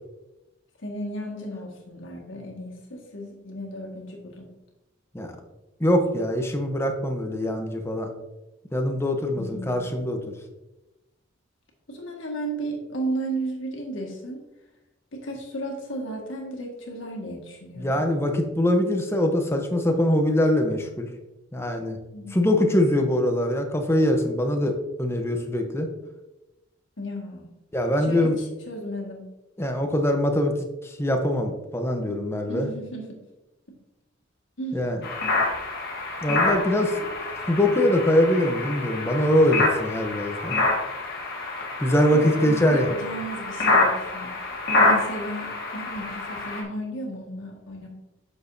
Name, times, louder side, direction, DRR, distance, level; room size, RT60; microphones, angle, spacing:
voice 1, 0.8-4.5 9.3-9.9 11.9-14.4 15.1-18.0 22.1-22.5 27.0-27.5 28.1-29.2 32.5-33.2 34.6-34.8 42.1-44.3 44.7-47.9, right 1 dB, 70° left, 0 dB, 1.7 m, -34 dB
voice 2, 5.8-8.1 8.7-10.3 17.8-21.1 21.5-22.0 22.3-25.9 27.7-28.4 29.6-30.6 30.8-32.7 34.7-35.0 36.2-37.0 37.5-40.6 41.8-42.9, left 1 dB, 15° left, 4 dB, 0.8 m, -23 dB
sound 1, 35.0-46.6, left 2 dB, 55° left, 1.6 m, -26 dB
8.3 x 6.4 x 2.7 m, 1.0 s
head